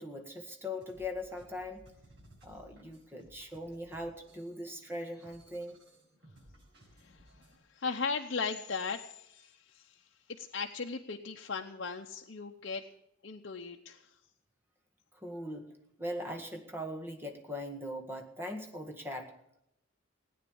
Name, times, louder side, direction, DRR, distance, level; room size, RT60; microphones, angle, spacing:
voice 1, 0.0-1.9 2.4-5.8 15.1-15.7 16.0-19.4, left 1 dB, 10° right, 4 dB, 1.7 m, -40 dB
sound 1, 0.7-7.6, right 1 dB, 60° right, 6.6 m, -60 dB
voice 2, 7.7-10.0 10.4-12.8 13.2-14.1, left 5 dB, 60° left, 1 dB, 0.8 m, -37 dB
17.5 x 9.5 x 7.1 m, 0.81 s
head